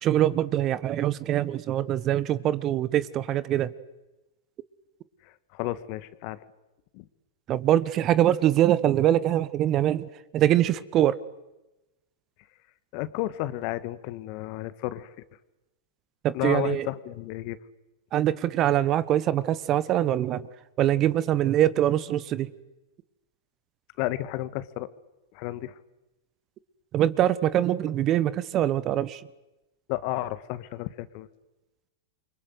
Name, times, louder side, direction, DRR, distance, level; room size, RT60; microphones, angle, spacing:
voice 1, 0.0-3.7 7.5-11.2 16.2-16.9 18.1-20.5 20.8-22.5 26.9-29.2, right 12 dB, 35° right, 17 dB, 1.3 m, -23 dB
voice 2, 5.2-6.4 6.9-7.0 12.9-15.1 16.3-17.6 24.0-24.9 25.3-25.8 29.9-31.3, left 16 dB, 50° left, 14 dB, 1.8 m, -32 dB
29.0 x 24.5 x 8.1 m, 0.99 s
hypercardioid pair, 100°, 0 cm